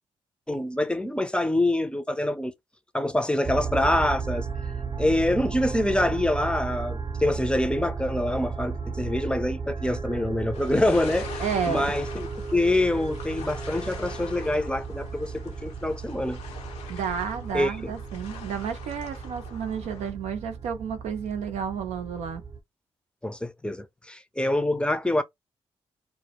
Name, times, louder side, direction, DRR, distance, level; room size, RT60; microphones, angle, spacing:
voice 1, 0.5-2.5 2.9-4.5 5.0-16.4 17.5-17.9 23.2-25.2, left 1 dB, 10° left, 0.5 m, -26 dB
sound 1, 3.4-22.6, right 5 dB, 40° right, 0.7 m, -35 dB
sound 2, 10.5-20.1, left 6 dB, 90° left, 0.6 m, -43 dB
voice 2, 11.4-11.9 16.9-22.4, right 7 dB, 85° right, 0.5 m, -31 dB
2.2 x 2.0 x 2.8 m
supercardioid pair, 50°, 11 cm